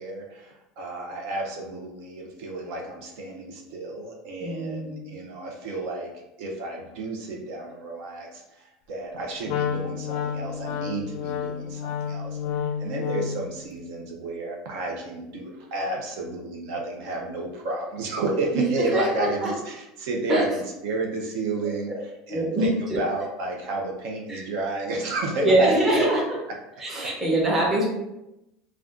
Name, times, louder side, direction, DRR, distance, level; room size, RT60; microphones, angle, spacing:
voice 1, 0.0-6.1 6.4-21.9 22.3-26.1, right 2 dB, 65° right, 0 dB, 0.5 m, -31 dB
voice 2, 4.4-5.1 12.4-12.9 18.5-19.5 20.3-20.4 22.3-23.0 24.3-24.4 25.4-26.2 26.8-27.9, right 1 dB, 15° right, -4 dB, 0.7 m, -24 dB
Wind instrument woodwind instrument, 9.5-13.5, left 7 dB, 60° left, 0.4 m, -30 dB
2.4 x 2.2 x 3.5 m, 0.91 s
cardioid pair, 160°, 2 cm